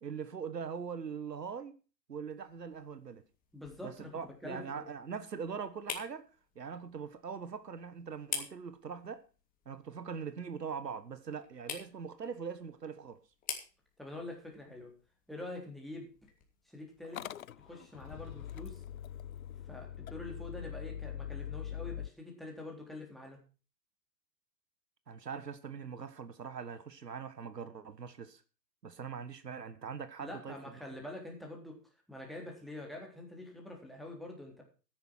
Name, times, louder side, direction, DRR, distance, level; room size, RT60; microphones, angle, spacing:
voice 1, 0.0-1.7 2.1-3.2 3.8-6.3 6.5-9.2 9.6-13.2 25.1-28.4 28.8-30.5, right 6 dB, 70° right, 1.5 m, -42 dB
sound 1, 2.3-17.1, left 7 dB, 15° left, 2.8 m, -48 dB
voice 2, 3.5-4.8 14.0-15.0 15.3-16.1 16.7-17.2 17.6-18.8 19.7-23.4 30.2-31.8 32.1-34.6, left 2 dB, ahead, 3.6 m, -45 dB
Motor vehicle (road) / Engine starting, 17.0-22.1, left 9 dB, 55° left, 0.6 m, -43 dB
13.5 x 10.5 x 4.5 m
figure-of-eight pair, 125°, 50 cm